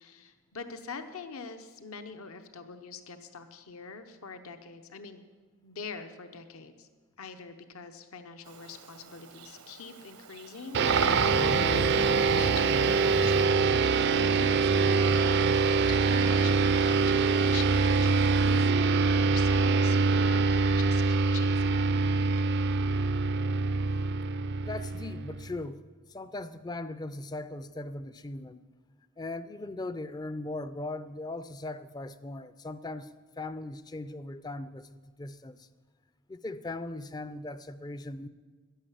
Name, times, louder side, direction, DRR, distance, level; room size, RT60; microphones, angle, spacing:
voice 1, 0.0-5.2 5.6-6.9 7.2-15.4 15.9-21.9, left 5 dB, 70° left, 8 dB, 0.9 m, -44 dB
Bird vocalization bird call bird song, 8.4-13.5, right 5 dB, 85° right, 1.1 m, -38 dB
sound 1, 10.7-25.6, right 4 dB, 50° right, 0.4 m, -24 dB
sound 2, 10.9-18.7, left 1 dB, 55° left, 1.3 m, -41 dB
voice 2, 24.6-25.8 26.1-28.6 29.2-35.7 36.3-38.3, left 2 dB, 20° left, 13 dB, 0.4 m, -39 dB
12.5 x 10.5 x 7.4 m, 1.4 s
head